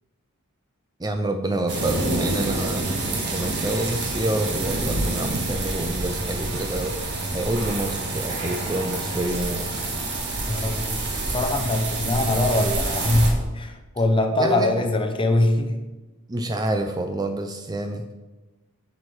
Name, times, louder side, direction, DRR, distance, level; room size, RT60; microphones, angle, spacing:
voice 1, 1.0-7.0 7.3-9.7 14.4-14.9 16.3-18.0, right 1 dB, 20° right, 6 dB, 0.4 m, -27 dB
sound 1, 1.7-13.3, right 2 dB, 50° right, 1.6 m, -27 dB
voice 2, 10.4-15.9, left 2 dB, 25° left, 5 dB, 0.7 m, -23 dB
10.5 x 4.6 x 4.7 m, 1.1 s
head